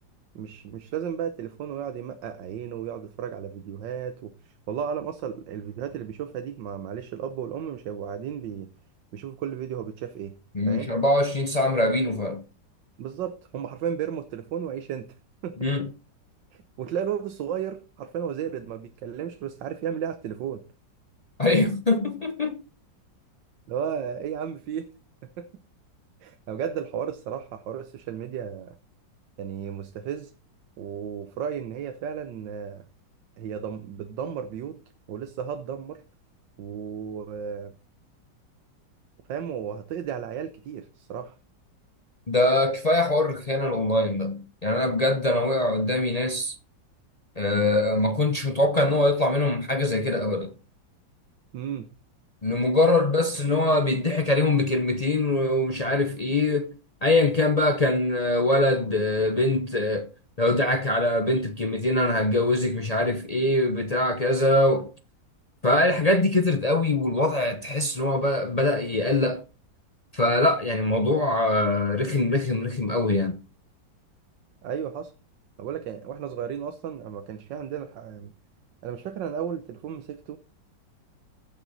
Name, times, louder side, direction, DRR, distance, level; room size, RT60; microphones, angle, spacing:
voice 1, 0.3-8.7 9.1-10.4 10.7-10.9 13.0-15.1 15.4-15.7 16.8-20.6 23.7-24.9 25.4-25.5 26.2-28.8 29.4-30.3 30.8-32.8 33.4-34.8 35.1-36.0 36.6-37.7 39.3-41.4 51.5-51.9 74.6-75.1 75.6-78.3 78.8-80.4, right 8 dB, 75° right, 1.5 m, -34 dB
voice 2, 10.5-12.4 15.6-15.9 21.4-22.6 42.3-46.5 47.4-50.5 52.4-56.7 57.0-60.1 60.4-64.9 65.6-69.4 70.1-73.4, left 2 dB, 45° left, 0.5 m, -23 dB
15.0 x 6.1 x 4.0 m
omnidirectional pair, 2.0 m